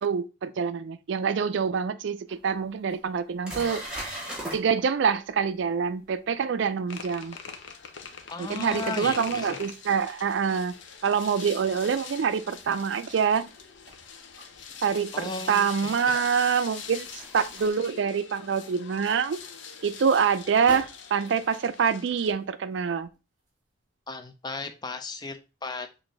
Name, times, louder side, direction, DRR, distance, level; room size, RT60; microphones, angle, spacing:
voice 1, 0.0-3.8 4.5-7.4 8.4-10.7 11.0-13.4 14.8-17.1 17.3-19.4 19.8-23.1, right 6 dB, 65° right, 0.4 m, -26 dB
sound 1, 2.3-2.4 2.9-3.0 3.4-4.6 9.7-9.8 12.6-12.7 14.4-14.5 15.8-17.7, right 1 dB, 5° right, 1.3 m, -39 dB
sound 2, 6.9-22.3, left 6 dB, 70° left, 0.6 m, -43 dB
voice 2, 8.3-9.5 15.1-16.2 24.1-26.0, left 3 dB, 20° left, 0.5 m, -36 dB
sound 3, 9.9-11.2 11.6-14.2 14.6-17.6 18.1-23.7 24.2-24.3, right 1 dB, 35° right, 1.7 m, -51 dB
6.3 x 2.6 x 3.2 m
head